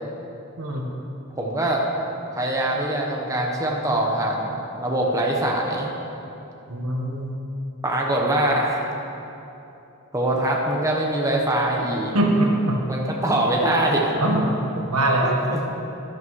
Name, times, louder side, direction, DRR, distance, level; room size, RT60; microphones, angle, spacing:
voice 1, 1.4-1.8 2.3-5.9 7.8-8.9 10.1-12.2 12.9-14.1 15.5-15.7, right 1 dB, 15° right, -2 dB, 1.0 m, -23 dB
voice 2, 6.7-7.4 12.1-12.8 14.2-15.3, right 1 dB, 85° right, 0 dB, 1.4 m, -22 dB
11.5 x 11.5 x 3.2 m, 2.9 s
head